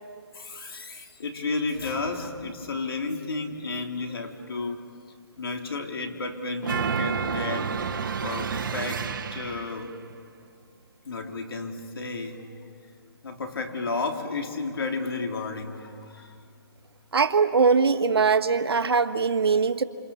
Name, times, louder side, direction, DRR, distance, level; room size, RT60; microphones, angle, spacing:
voice 1, 0.3-4.8 5.4-7.7 8.2-9.9 11.0-12.5 13.2-16.4, left 3 dB, 70° left, 3 dB, 3.4 m, -32 dB
sound 1, 6.6-9.8, right 6 dB, 55° right, 1.6 m, -30 dB
voice 2, 17.1-19.8, right 5 dB, 85° right, 9 dB, 1.4 m, -21 dB
28.5 x 27.0 x 7.2 m, 2.2 s
hypercardioid pair, 165°, 13 cm